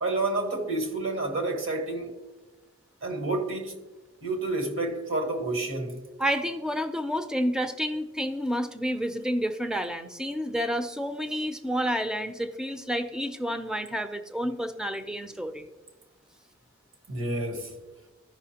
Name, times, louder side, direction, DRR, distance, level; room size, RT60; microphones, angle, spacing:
voice 1, 0.0-2.1 3.0-3.7 4.2-6.0 17.1-17.7, right 2 dB, 65° right, 1.4 m, -29 dB
voice 2, 6.2-15.7, equal, 5° right, 0.4 m, -30 dB
14.0 x 5.6 x 2.8 m
head